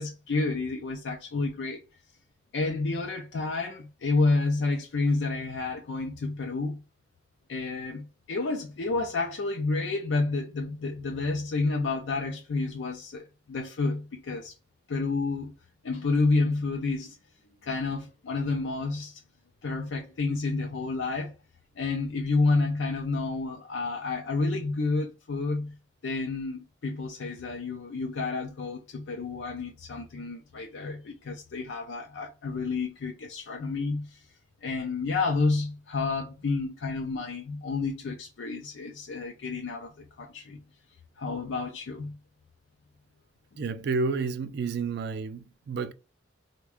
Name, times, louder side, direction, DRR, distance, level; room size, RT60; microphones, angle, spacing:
voice 1, 0.0-1.8 2.5-6.8 7.5-14.5 14.9-15.5 15.8-17.2 17.6-19.2 19.6-21.3 21.8-25.8 26.0-34.2 34.6-40.6 41.2-42.2, left 3 dB, 70° left, 0.4 m, -30 dB
voice 2, 43.6-45.9, right 4 dB, 60° right, 0.3 m, -30 dB
3.4 x 2.2 x 3.5 m
head